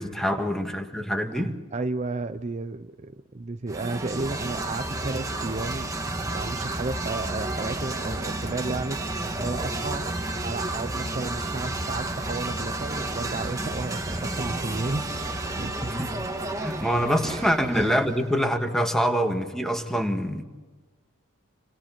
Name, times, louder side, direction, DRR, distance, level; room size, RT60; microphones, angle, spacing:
voice 1, 0.0-1.5 15.8-16.1 16.6-20.4, equal, ahead, 5 dB, 1.9 m, -25 dB
voice 2, 1.3-5.9 6.2-10.1 10.4-15.9 17.2-18.0, right 3 dB, 30° right, 9 dB, 0.6 m, -33 dB
sound 1, 3.7-18.4, right 2 dB, 15° right, 1.7 m, -31 dB
28.5 x 26.5 x 4.6 m, 1.3 s
head